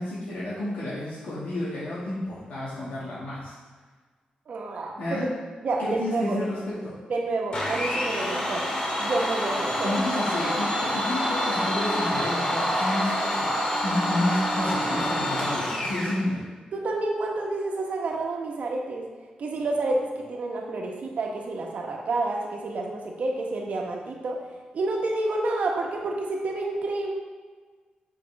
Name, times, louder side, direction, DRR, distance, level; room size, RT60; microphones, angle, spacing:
voice 1, 0.0-3.5 5.0-5.3 5.8-7.0 9.8-16.4, left 1 dB, 85° left, -8 dB, 2.0 m, -30 dB
voice 2, 4.5-5.2 5.6-6.4 7.1-8.7 9.0-9.9 10.4-10.8 16.7-19.1 19.4-24.4 24.7-27.1, right 2 dB, 65° right, 0 dB, 1.3 m, -29 dB
Domestic sounds home sounds, 7.5-16.2, equal, 35° left, 2.0 m, -27 dB
7.6 x 6.0 x 3.5 m, 1.4 s
cardioid pair, 105°, 3 cm